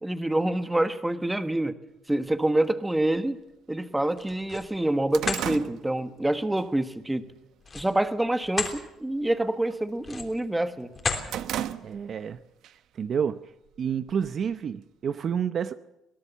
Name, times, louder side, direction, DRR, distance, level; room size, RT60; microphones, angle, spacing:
voice 1, 0.0-1.7 2.1-3.4 3.7-7.2 7.7-10.9, right 1 dB, 10° right, 10 dB, 1.3 m, -26 dB
sound 1, 2.3-2.4 3.3-3.4 3.8-3.9 4.3-6.7 7.1-7.4 7.8-8.3 8.6-8.9 9.2-10.4 10.8-12.3 12.6-12.8 13.7-14.5, right 11 dB, 70° right, 1.1 m, -36 dB
sound 2, 4.1-4.7 5.1-5.5 7.6-8.8 9.2-9.4 10.0-10.5 10.9-11.3, left 4 dB, 30° left, 3.3 m, -32 dB
voice 2, 11.8-12.4 12.9-13.4 13.8-15.7, right 7 dB, 45° right, 12 dB, 0.8 m, -29 dB
23.5 x 17.5 x 7.0 m, 0.90 s
cardioid pair, 125°, 0 cm